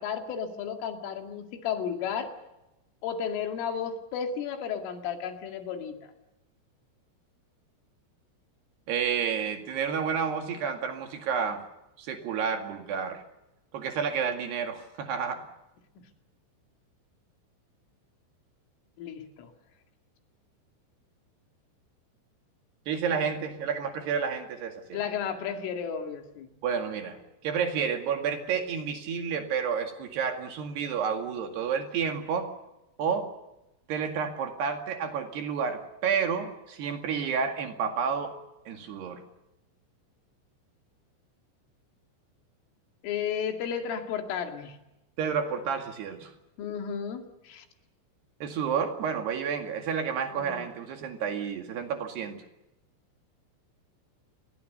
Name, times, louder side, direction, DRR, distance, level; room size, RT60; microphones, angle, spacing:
voice 1, 0.0-2.3 3.0-6.0 19.0-19.5 24.9-26.5 43.0-44.8 46.6-47.6 50.3-50.7, left 7 dB, 75° left, 5 dB, 4.7 m, -33 dB
voice 2, 8.9-11.6 12.0-13.2 13.7-15.5 22.9-25.0 26.6-32.5 33.0-33.3 33.9-38.3 38.7-39.2 45.2-46.3 48.4-52.4, right 6 dB, 60° right, 5 dB, 3.7 m, -30 dB
29.0 x 22.0 x 6.8 m, 0.95 s
omnidirectional pair, 5.9 m